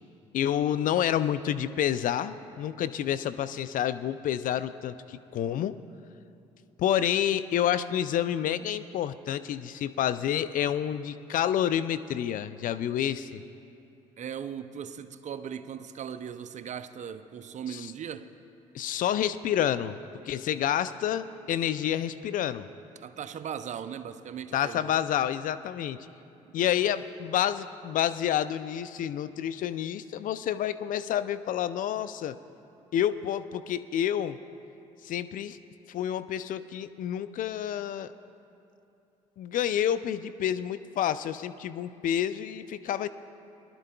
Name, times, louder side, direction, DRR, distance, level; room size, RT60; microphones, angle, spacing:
voice 1, 0.3-5.8 6.8-13.4 17.7-17.9 18.7-20.0 20.2-22.7 24.5-26.1 26.5-32.4 32.9-34.4 35.0-35.6 35.9-38.1 39.4-43.1, left 10 dB, 55° left, 13 dB, 0.4 m, -29 dB
voice 2, 14.2-18.3 23.0-24.9 26.4-26.7, right 8 dB, 50° right, 12 dB, 0.6 m, -38 dB
21.5 x 12.0 x 2.3 m, 2.7 s
hypercardioid pair, 55°, 16 cm